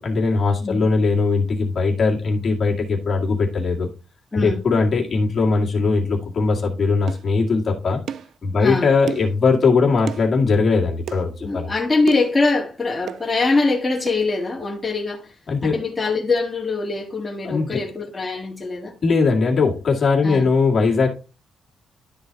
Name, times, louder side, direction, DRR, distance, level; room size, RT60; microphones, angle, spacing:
voice 1, 0.0-3.9 4.3-8.0 8.4-11.7 15.5-15.7 17.4-17.8 19.0-21.1, left 4 dB, 40° left, 2.1 m, -20 dB
voice 2, 4.3-4.6 8.6-9.0 11.4-15.3 15.6-18.9 20.2-20.5, left 3 dB, 15° left, 1.8 m, -23 dB
sound 1, 7.1-7.3 8.1-8.3 9.1-9.4 10.1-10.3 11.1-11.2 12.1-12.4 13.1-13.3 14.1-14.2, right 9 dB, 65° right, 0.4 m, -31 dB
12.0 x 4.1 x 4.0 m
cardioid pair, 125°, 0 cm